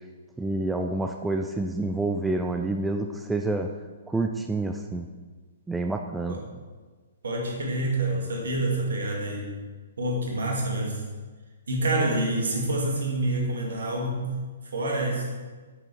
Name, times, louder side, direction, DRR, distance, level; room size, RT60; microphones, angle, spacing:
voice 1, 0.4-3.7 4.1-5.1 5.7-6.4, right 2 dB, 5° right, 4 dB, 0.4 m, -28 dB
voice 2, 7.2-9.5 10.0-11.0 11.7-14.3 14.7-15.3, right 1 dB, 65° right, -1 dB, 2.2 m, -27 dB
8.3 x 6.7 x 4.5 m, 1.4 s
figure-of-eight pair, 120°, 0 cm